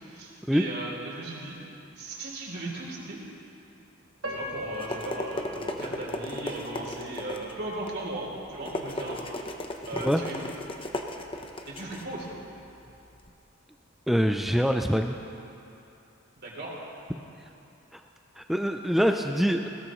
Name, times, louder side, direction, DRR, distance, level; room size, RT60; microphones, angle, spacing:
voice 1, 0.0-1.6 1.9-3.2 4.3-9.2 9.9-10.4 11.7-12.3 16.4-16.7, right 2 dB, 50° right, -3 dB, 3.2 m, -37 dB
Piano, 4.2-7.2 7.8-7.9 8.6-8.8, left 1 dB, 90° right, 3.1 m, -40 dB
sound 1, 4.4-13.3, left 1 dB, 25° left, 0.9 m, -37 dB
voice 2, 14.1-15.2 17.9-18.0 18.4-19.7, equal, ahead, 4 dB, 0.4 m, -24 dB
20.5 x 17.5 x 3.1 m, 2.8 s
head